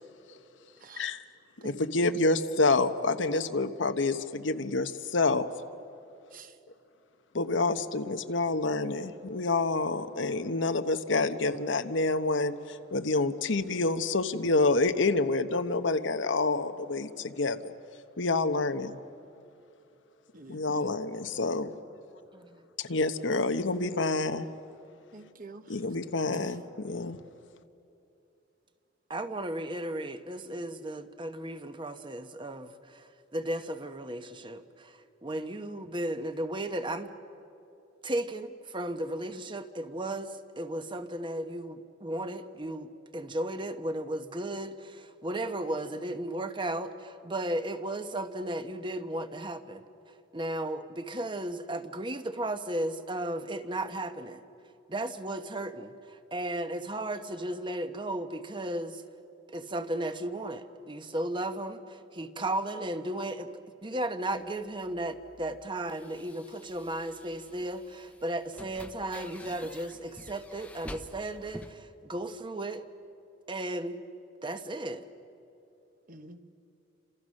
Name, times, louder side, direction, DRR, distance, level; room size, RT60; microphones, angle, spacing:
voice 1, 1.6-5.4 7.3-17.7 18.2-19.0 20.5-21.7 22.8-24.5 25.7-27.2, left 3 dB, 90° left, 9 dB, 1.1 m, -28 dB
voice 2, 20.3-20.9 25.1-25.6 76.1-76.4, right 2 dB, 50° right, 9 dB, 1.2 m, -47 dB
voice 3, 29.1-34.9 35.2-37.1 38.0-49.8 50.3-54.4 54.9-59.0 59.5-63.5 63.8-72.8 73.5-74.0 74.4-75.1, right 1 dB, 25° right, 9 dB, 1.1 m, -35 dB
sound 1, 64.3-71.7, left 1 dB, 5° left, 0.9 m, -49 dB
30.0 x 26.5 x 6.5 m, 2.7 s
head